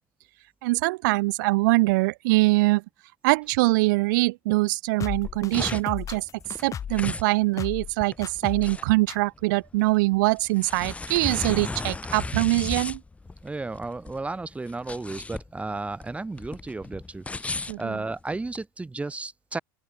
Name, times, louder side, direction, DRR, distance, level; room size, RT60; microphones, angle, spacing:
voice 1, 0.6-2.8 3.2-6.3 6.6-13.0 17.7-18.0, right 22 dB, 70° right, 2.2 m, -23 dB
sound 1, 5.0-7.1 7.6-7.9 8.2-8.8 9.1-9.2, left 8 dB, 30° left, 1.6 m, -35 dB
sound 2, 5.1-18.6, left 3 dB, 10° left, 3.7 m, -35 dB
voice 2, 13.4-19.6, right 3 dB, 10° right, 5.0 m, -34 dB
open air
hypercardioid pair, 100°, 11 cm